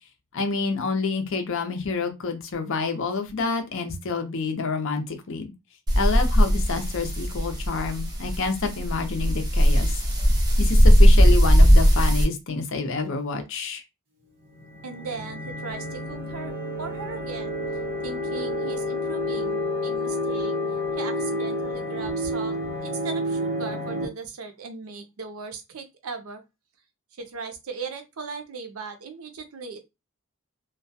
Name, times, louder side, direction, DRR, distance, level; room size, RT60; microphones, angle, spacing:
voice 1, 0.3-5.5 6.0-10.0 10.6-13.8, left 4 dB, 60° left, 0.6 m, -28 dB
sound 1, 5.9-12.2, equal, 20° right, 0.6 m, -18 dB
sound 2, 14.5-24.1, left 1 dB, 40° right, 0.9 m, -29 dB
voice 2, 14.8-17.6 18.0-20.5 20.9-26.4 27.1-29.8, right 4 dB, 70° right, 0.6 m, -38 dB
2.3 x 2.1 x 2.6 m
head